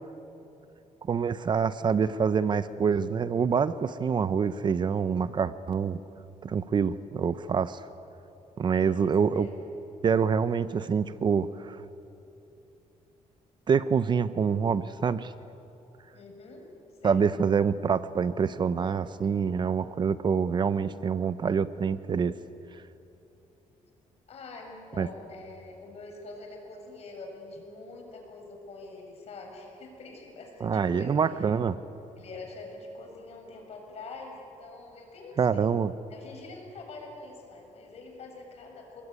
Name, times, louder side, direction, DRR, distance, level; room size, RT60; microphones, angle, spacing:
voice 1, 1.1-6.0 6.4-7.8 8.6-9.5 10.0-11.8 13.7-15.3 17.0-22.3 25.0-25.1 30.6-31.8 35.4-35.9, right 6 dB, 40° right, 14 dB, 0.7 m, -26 dB
voice 2, 8.7-9.7 16.1-16.7 17.0-17.2 24.3-31.2 32.2-35.7 36.1-39.0, left 3 dB, 55° left, 2 dB, 7.3 m, -45 dB
27.5 x 20.5 x 9.7 m, 3.0 s
cardioid pair, 135°, 13 cm